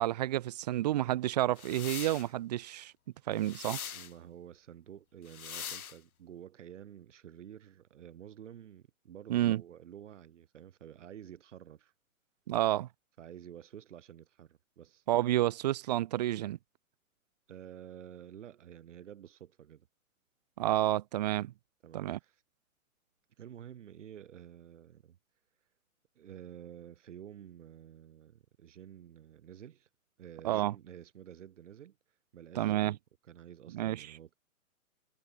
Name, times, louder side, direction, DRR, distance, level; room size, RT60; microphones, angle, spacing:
voice 1, 0.0-2.9 3.3-3.8 9.3-9.6 12.5-12.9 15.1-16.6 20.6-21.5 21.9-22.2 30.4-30.7 32.6-33.0 33.7-34.1, right 14 dB, 30° right, 0.6 m, -30 dB
sound 1, 1.6-2.3 3.4-4.1 5.3-6.0, left 8 dB, 80° left, 1.4 m, -42 dB
voice 2, 3.9-11.9 13.2-15.0 17.5-19.9 21.8-22.4 23.4-25.2 26.2-29.9 30.2-32.0 32.3-33.0 33.2-34.3, right 10 dB, 55° right, 6.9 m, -50 dB
hypercardioid pair, 145°, 42 cm